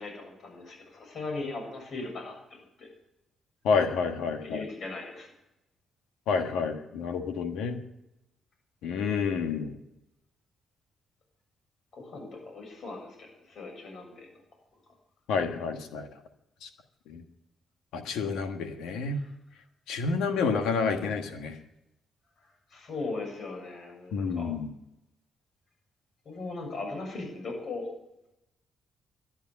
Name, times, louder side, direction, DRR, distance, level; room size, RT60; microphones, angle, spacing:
voice 1, 0.0-2.9 4.4-5.3 11.9-14.3 19.2-19.3 22.7-24.5 26.3-27.9, left 3 dB, 60° left, 2 dB, 7.3 m, -38 dB
voice 2, 3.6-4.6 6.3-7.8 8.8-9.7 15.3-16.1 16.6-16.7 17.1-17.2 17.9-19.2 19.9-21.6 24.1-24.7, left 5 dB, 90° left, 6 dB, 1.4 m, -29 dB
12.0 x 10.5 x 8.3 m, 0.86 s
cardioid pair, 75°, 0 cm